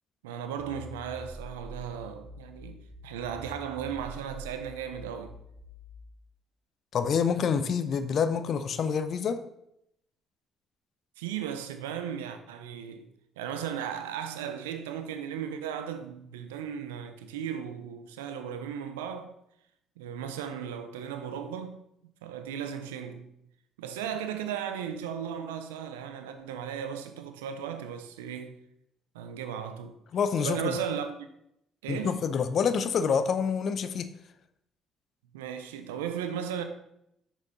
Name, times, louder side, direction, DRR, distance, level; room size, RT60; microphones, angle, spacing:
voice 1, 0.2-5.4 11.2-13.1 13.4-19.3 20.0-21.8 22.2-23.3 23.8-28.6 29.1-30.0 30.4-31.3 31.8-32.2 35.3-36.6, right 8 dB, 90° right, 0.6 m, -36 dB
sound 1, 0.6-6.1, left 1 dB, 10° left, 3.2 m, -46 dB
voice 2, 6.9-9.4 30.1-30.7 31.9-34.1, left 6 dB, 55° left, 0.6 m, -27 dB
6.4 x 6.1 x 4.1 m
hypercardioid pair, 55°, 0 cm